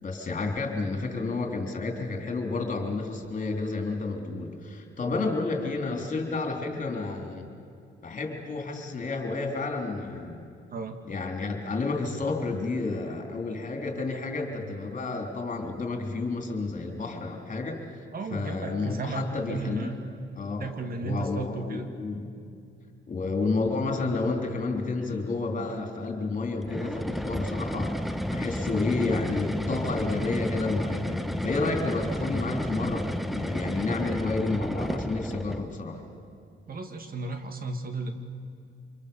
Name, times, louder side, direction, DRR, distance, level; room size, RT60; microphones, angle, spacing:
voice 1, 0.0-7.5 8.0-10.4 11.1-17.8 18.3-19.9 20.4-20.7 21.0-22.3 23.1-36.0, left 3 dB, 40° left, 3 dB, 3.7 m, -30 dB
voice 2, 18.1-20.0 20.6-21.9 36.7-38.1, right 3 dB, 50° right, 6 dB, 2.0 m, -34 dB
sound 1, 26.6-35.7, equal, ahead, 0.8 m, -31 dB
26.5 x 21.5 x 7.1 m, 2.4 s
cardioid pair, 90°, 20 cm